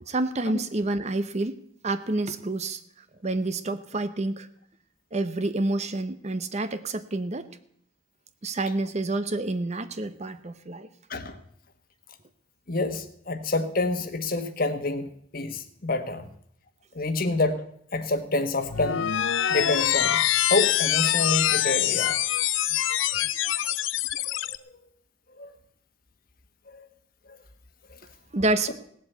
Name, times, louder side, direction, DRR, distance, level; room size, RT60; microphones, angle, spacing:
voice 1, 0.0-2.8 3.2-4.5 5.1-7.5 8.4-10.9 28.3-28.7, right 2 dB, 35° right, 12 dB, 0.8 m, -28 dB
voice 2, 12.7-15.1 15.3-16.3 16.9-17.6 17.9-19.0 19.5-22.2 23.1-23.2 24.3-24.7 25.4-25.5 26.7-26.9 27.9-28.0, left 2 dB, 50° left, 9 dB, 1.3 m, -28 dB
sound 1, 18.6-24.6, left 12 dB, 85° left, 0.5 m, -24 dB
18.0 x 7.6 x 8.1 m, 0.66 s
head